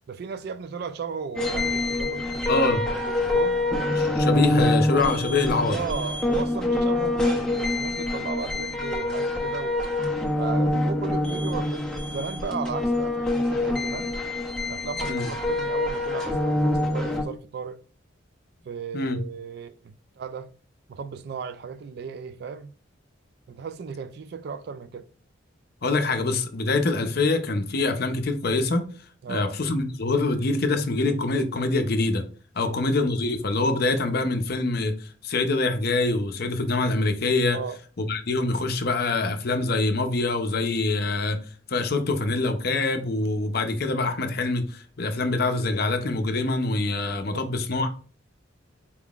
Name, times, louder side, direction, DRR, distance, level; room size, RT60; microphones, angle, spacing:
voice 1, 0.1-3.6 5.7-9.8 10.4-14.2 14.7-17.8 18.7-20.5 20.9-22.7 23.5-25.1 29.2-29.5 32.6-32.9 37.5-37.8 47.3-47.4, right 5 dB, 55° right, 0.3 m, -35 dB
sound 1, 1.3-17.2, left 1 dB, 5° left, 0.7 m, -25 dB
voice 2, 2.5-2.8 4.0-5.8 15.1-15.3 18.9-19.2 25.8-28.8 29.3-32.2 32.6-37.6 38.0-41.4 41.7-47.9, left 3 dB, 50° left, 0.6 m, -25 dB
4.4 x 3.6 x 2.4 m
head